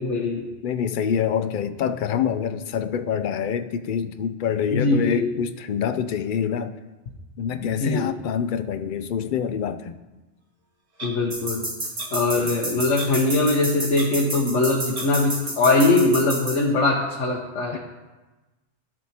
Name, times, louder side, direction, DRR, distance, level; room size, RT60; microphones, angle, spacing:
voice 1, 0.0-0.4 4.7-5.3 7.6-8.1 11.0-11.6 12.1-17.8, left 2 dB, 80° left, -2 dB, 1.3 m, -21 dB
voice 2, 0.6-6.7 7.4-9.9 12.4-12.5 17.7-17.8, left 8 dB, 60° left, 9 dB, 0.5 m, -26 dB
Clock, 11.0-11.1 12.0-12.1 13.0-13.2 13.5-13.6 13.9-14.1 14.9-15.1, right 3 dB, 35° right, 1.3 m, -36 dB
sound 1, 11.3-16.6, right 1 dB, 85° right, 3.1 m, -29 dB
13.0 x 7.6 x 2.8 m, 1.1 s
omnidirectional pair, 1.2 m